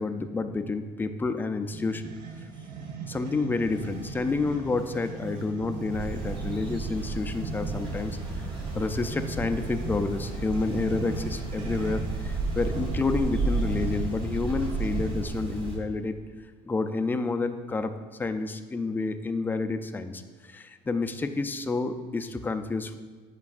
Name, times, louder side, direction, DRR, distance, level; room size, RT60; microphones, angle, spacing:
voice 1, 0.0-2.0 3.1-16.1 16.7-17.9 18.2-22.9, left 3 dB, 10° left, 8 dB, 0.3 m, -29 dB
sound 1, 1.7-15.4, right 4 dB, 65° right, 0.8 m, -40 dB
sound 2, 3.6-13.9, right 2 dB, 85° right, 1.2 m, -48 dB
sound 3, 5.9-15.8, right 3 dB, 35° right, 1.6 m, -33 dB
8.3 x 5.2 x 2.4 m, 1.4 s
cardioid pair, 115°, 16 cm